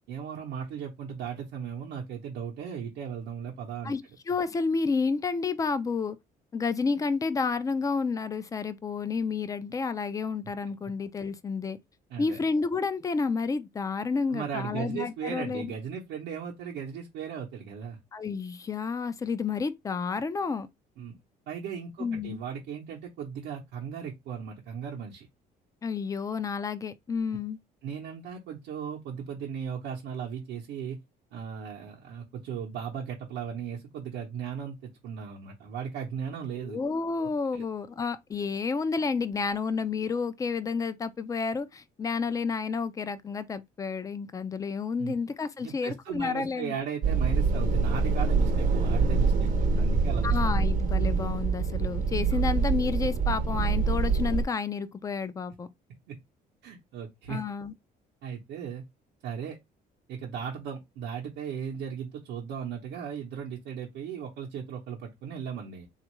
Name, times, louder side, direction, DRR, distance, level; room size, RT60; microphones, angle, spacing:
voice 1, 0.1-3.9 12.1-12.4 14.3-18.0 21.0-21.1 21.5-25.3 27.8-31.0 31.3-36.8 37.2-37.6 45.0-45.1 45.6-49.5 49.8-50.4 52.3-52.4 56.1-56.2 56.6-57.4 58.2-58.8 59.2-59.6 60.1-65.9, right 7 dB, 85° right, 0.7 m, -37 dB
voice 2, 4.3-6.2 6.5-11.8 12.2-15.7 18.1-20.7 22.0-22.4 25.8-27.6 36.6-46.8 50.2-55.7 57.3-57.7, left 5 dB, 20° left, 0.4 m, -30 dB
sound 1, 47.0-54.4, right 4 dB, 55° right, 0.7 m, -25 dB
3.5 x 2.4 x 3.0 m
cardioid pair, 110°, 17 cm